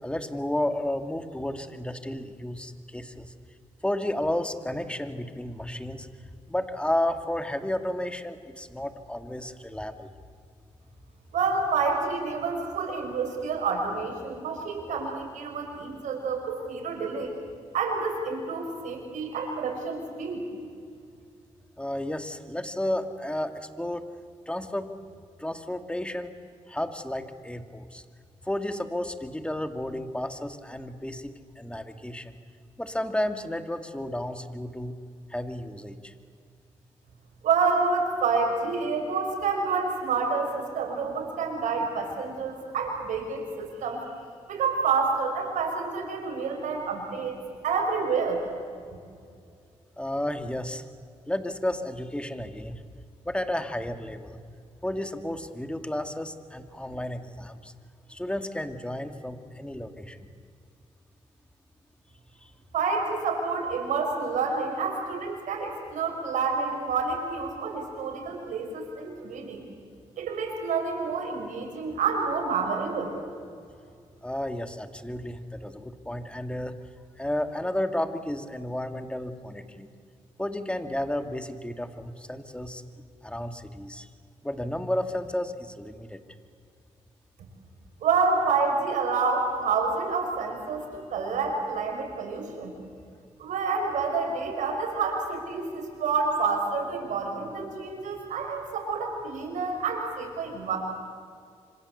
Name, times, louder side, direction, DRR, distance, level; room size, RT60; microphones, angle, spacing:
voice 1, 0.0-3.3 3.8-6.1 6.5-10.1 21.8-24.1 24.5-24.9 25.4-26.3 26.7-28.0 28.4-32.4 32.8-34.9 35.3-36.1 50.0-50.8 51.3-52.8 53.2-54.4 54.8-57.7 58.1-60.3 62.4-62.5 74.2-76.8 77.2-79.9 80.4-82.8 83.2-84.1 84.4-86.2, left 1 dB, 10° left, 7 dB, 2.6 m, -32 dB
voice 2, 11.3-17.3 17.7-20.4 37.4-44.0 44.5-47.4 47.6-48.4 62.7-69.6 70.2-73.1 88.0-92.7 93.4-100.8, right 4 dB, 85° right, 2 dB, 6.1 m, -28 dB
26.5 x 26.0 x 8.2 m, 2.3 s
cardioid pair, 60°, 13 cm